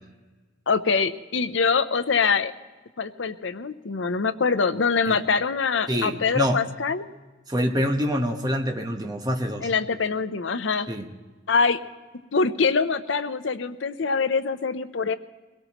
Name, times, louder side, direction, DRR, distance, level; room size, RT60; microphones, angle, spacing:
voice 1, 0.7-2.5 3.0-7.1 9.6-10.9 11.5-11.8 12.3-15.2, left 5 dB, 70° left, 11 dB, 0.7 m, -24 dB
voice 2, 5.9-6.6 7.5-9.7 10.9-11.1, equal, 20° right, 3 dB, 1.0 m, -26 dB
23.0 x 17.5 x 3.0 m, 1.3 s
head